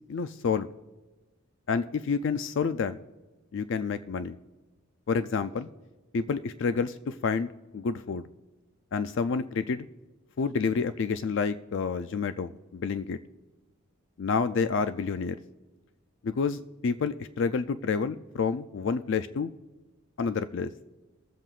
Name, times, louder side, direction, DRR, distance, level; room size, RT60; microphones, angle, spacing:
voice 1, 0.1-0.7 1.7-3.0 3.5-4.4 5.1-5.7 6.1-8.2 8.9-9.8 10.4-13.2 14.2-15.4 16.2-19.5 20.2-20.7, left 5 dB, 60° left, 11 dB, 0.4 m, -29 dB
21.5 x 7.7 x 2.4 m, 1.2 s
head